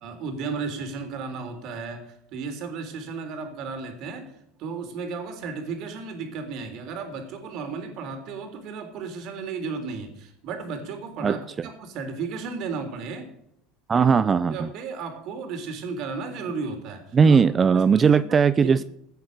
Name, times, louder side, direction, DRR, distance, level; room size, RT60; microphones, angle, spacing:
voice 1, 0.0-4.3 4.6-13.3 14.0-14.1 14.5-17.4 17.7-18.2 18.6-18.7, right 4 dB, 60° right, 6 dB, 3.5 m, -34 dB
voice 2, 11.2-11.7 13.9-14.7 17.1-18.8, right 6 dB, 30° right, 15 dB, 0.5 m, -19 dB
16.5 x 8.1 x 6.6 m, 0.75 s
supercardioid pair, 100°, 0 cm